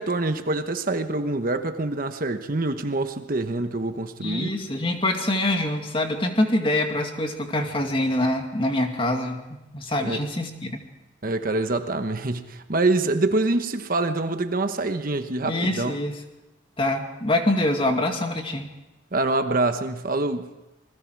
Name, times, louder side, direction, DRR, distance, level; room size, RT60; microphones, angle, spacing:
voice 1, 0.0-4.5 10.0-10.2 11.2-15.9 19.1-20.5, right 2 dB, 50° right, 8 dB, 1.2 m, -25 dB
voice 2, 4.2-10.8 15.4-16.2 16.8-18.7, left 1 dB, 30° left, 3 dB, 2.3 m, -25 dB
28.0 x 21.0 x 4.7 m, 1.0 s
head